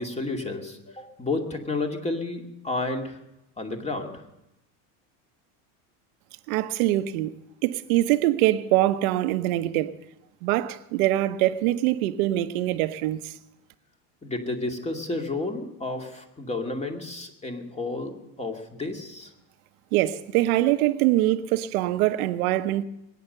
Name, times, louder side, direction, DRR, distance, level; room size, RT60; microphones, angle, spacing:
voice 1, 0.0-3.2 3.6-4.1 14.2-19.3, left 2 dB, 15° left, 2.4 m, -31 dB
voice 2, 6.5-7.3 7.6-9.9 10.4-13.3 19.9-22.8, right 15 dB, 90° right, 1.0 m, -23 dB
21.5 x 9.5 x 6.7 m
supercardioid pair, 105°, 41 cm